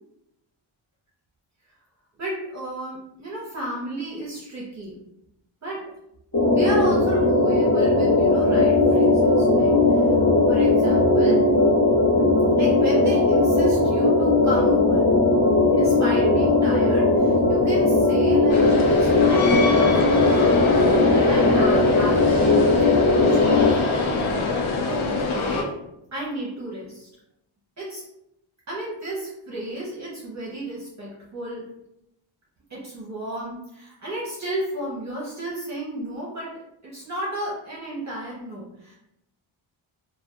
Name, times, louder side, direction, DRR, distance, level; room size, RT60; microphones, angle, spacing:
voice 1, 2.2-5.0 5.6-5.8 6.5-10.2 10.5-11.4 12.6-15.1 15.7-20.8 21.1-25.7 26.1-27.1 27.8-28.0 28.7-31.7 32.7-39.0, right 1 dB, 35° right, -5 dB, 0.6 m, -33 dB
sound 1, 6.3-23.7, left 2 dB, 25° left, 1.0 m, -18 dB
sound 2, 18.5-25.6, left 3 dB, 80° left, 0.5 m, -24 dB
2.6 x 2.2 x 2.2 m, 0.84 s
wide cardioid pair, 120°, 48 cm